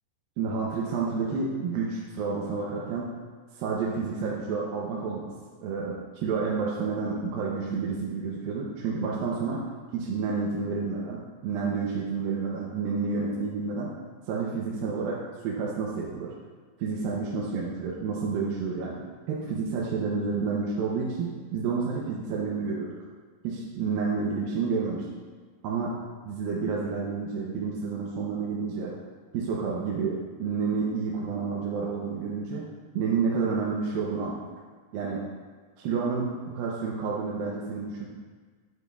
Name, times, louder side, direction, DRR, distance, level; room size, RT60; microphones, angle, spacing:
voice 1, 0.4-3.1 3.5-5.3 5.6-9.6 9.9-13.9 14.3-16.3 16.8-19.0 19.3-22.9 23.4-25.0 25.6-26.0 26.3-28.9 29.3-32.6 32.9-34.4 34.9-35.2 35.8-38.1, right 5 dB, 80° right, -4 dB, 2.5 m, -30 dB
9.5 x 7.9 x 2.3 m, 1.5 s
omnidirectional pair, 4.2 m